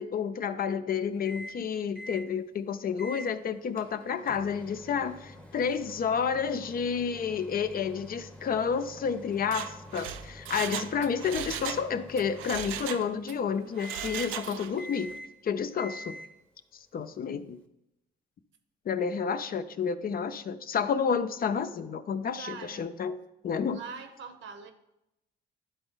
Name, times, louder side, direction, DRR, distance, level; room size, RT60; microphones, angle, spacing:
voice 1, 0.0-15.2 15.4-16.2 16.9-17.6 18.9-23.2 23.4-23.8, left 6 dB, 45° left, 11 dB, 0.5 m, -30 dB
Microwave oven, 1.2-1.6 1.9-2.3 3.0-3.3 3.8-13.4 13.8-14.4 14.8-15.4 15.8-16.4, left 1 dB, 5° left, 0.9 m, -46 dB
Mechanisms, 9.4-11.9 12.2-13.4 13.7-14.8 15.1-15.2, right 10 dB, 90° right, 0.5 m, -37 dB
voice 2, 22.4-22.9 23.7-24.7, right 6 dB, 70° right, 8 dB, 1.0 m, -42 dB
11.0 x 4.0 x 3.8 m, 0.87 s
cardioid pair, 90°, 20 cm